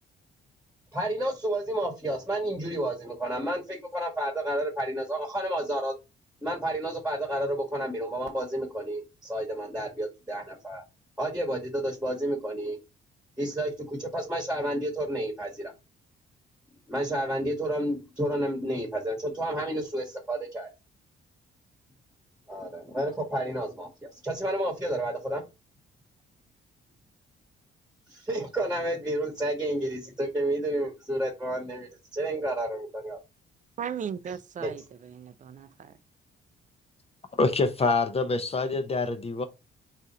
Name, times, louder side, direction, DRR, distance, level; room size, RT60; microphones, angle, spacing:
voice 1, 0.9-5.9 6.4-10.8 11.2-12.8 13.4-15.7 16.9-20.7 22.5-25.4 28.1-33.2 34.6-34.7, right 1 dB, 5° right, 1.2 m, -30 dB
voice 2, 33.8-36.0, right 7 dB, 40° right, 0.5 m, -37 dB
voice 3, 37.3-39.4, left 3 dB, 30° left, 0.6 m, -26 dB
4.2 x 2.4 x 3.9 m
cardioid pair, 90°, 20 cm